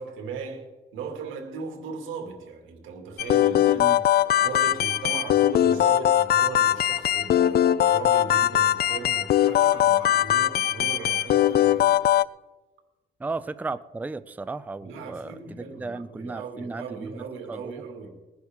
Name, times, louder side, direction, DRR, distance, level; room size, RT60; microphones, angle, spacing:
voice 1, 0.0-3.9 4.4-11.9 13.3-13.4 14.8-18.2, right 5 dB, 90° right, 2.3 m, -37 dB
sound 1, 3.2-12.2, left 11 dB, 55° left, 0.4 m, -21 dB
voice 2, 13.2-15.3 15.6-17.2 17.5-17.7, right 3 dB, 10° right, 0.4 m, -34 dB
20.5 x 10.5 x 3.6 m
cardioid pair, 90°, 20 cm